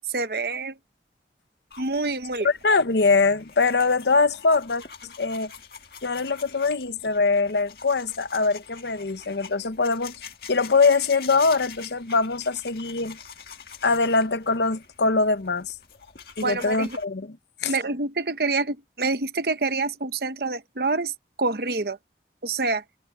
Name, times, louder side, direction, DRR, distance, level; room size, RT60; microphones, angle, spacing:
voice 1, 0.1-0.8 1.8-2.5 16.4-17.0 17.6-22.0 22.4-22.8, right 3 dB, 60° right, 1.1 m, -27 dB
sound 1, 1.7-17.1, left 7 dB, 60° left, 1.7 m, -45 dB
voice 2, 2.4-4.8 5.2-5.5 6.0-10.1 10.5-13.2 13.8-15.7 16.4-17.4 17.6-17.7, left 4 dB, 75° left, 0.9 m, -22 dB
head